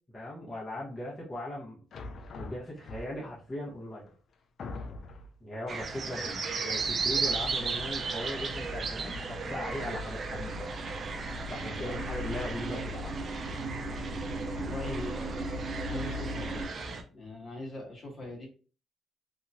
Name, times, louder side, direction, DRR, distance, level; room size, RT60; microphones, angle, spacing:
voice 1, 0.1-1.8 2.4-4.1 5.4-10.8 11.5-13.1, left 1 dB, 20° left, -7 dB, 1.2 m, -39 dB
sound 1, 1.9-3.4 4.1-4.2 4.6-5.4, left 3 dB, 60° left, 0.4 m, -42 dB
sound 2, 5.7-17.0, right 4 dB, 45° right, 0.5 m, -35 dB
sound 3, 6.8-16.7, equal, 15° right, 0.8 m, -39 dB
voice 2, 14.5-15.5 15.9-16.6 17.1-18.5, left 1 dB, 40° left, -2 dB, 1.4 m, -41 dB
2.9 x 2.7 x 2.3 m, 0.38 s
cardioid pair, 90°, 0 cm